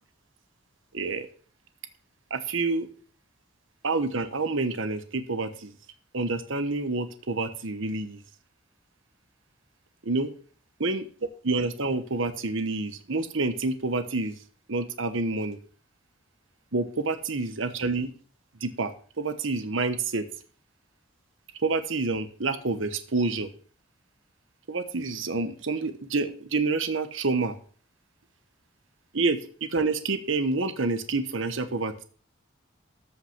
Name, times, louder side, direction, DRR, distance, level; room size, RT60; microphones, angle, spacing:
voice 1, 0.9-1.3 2.3-2.9 3.8-5.7 6.1-8.2 10.0-10.3 10.8-11.1 11.4-14.3 14.7-15.6 16.7-18.1 18.6-18.9 19.2-20.2 21.6-23.5 24.7-27.5 29.1-32.0, right 3 dB, 75° right, 10 dB, 1.1 m, -28 dB
13.5 x 5.7 x 5.9 m, 0.43 s
head